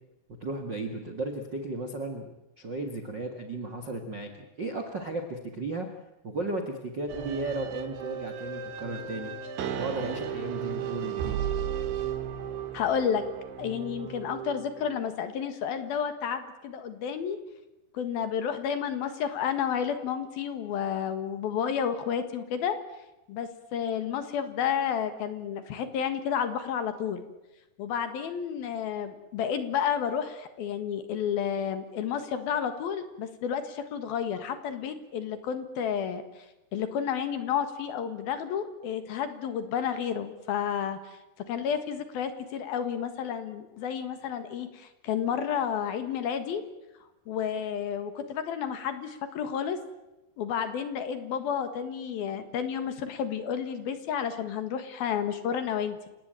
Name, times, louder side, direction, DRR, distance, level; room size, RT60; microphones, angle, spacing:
voice 1, 0.4-2.3 2.6-4.3 4.6-5.9 6.2-9.3 9.8-11.4, right 2 dB, 45° right, 6 dB, 1.4 m, -34 dB
sound 1, 7.1-15.1, right 8 dB, 85° right, 4.3 m, -35 dB
voice 2, 12.7-13.2 13.6-17.4 17.9-22.8 23.3-27.2 27.8-36.5 36.7-41.2 41.5-46.6 47.3-49.8 50.4-56.1, left 8 dB, 65° left, 9 dB, 3.2 m, -31 dB
29.0 x 18.0 x 9.0 m, 0.98 s
omnidirectional pair, 5.1 m